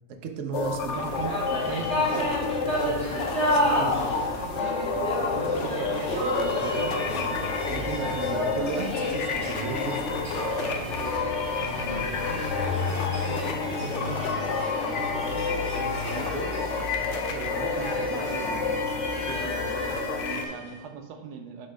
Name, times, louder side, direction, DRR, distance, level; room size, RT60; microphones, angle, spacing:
voice 1, 0.2-1.9 3.5-4.0 7.7-10.2 11.8-12.1, right 4 dB, 60° right, 4 dB, 1.0 m, -34 dB
sound 1, 0.5-20.5, left 5 dB, 65° left, 0.8 m, -30 dB
sound 2, 0.9-20.7, left 1 dB, 5° left, 1.9 m, -31 dB
voice 2, 0.9-1.4 1.7-2.3 2.9-3.2 5.2-7.5 10.3-11.4 13.0-16.5 17.3-19.8 20.1-21.7, right 6 dB, 85° right, 5 dB, 1.3 m, -39 dB
5.5 x 4.4 x 5.0 m, 1.1 s
omnidirectional pair, 1.7 m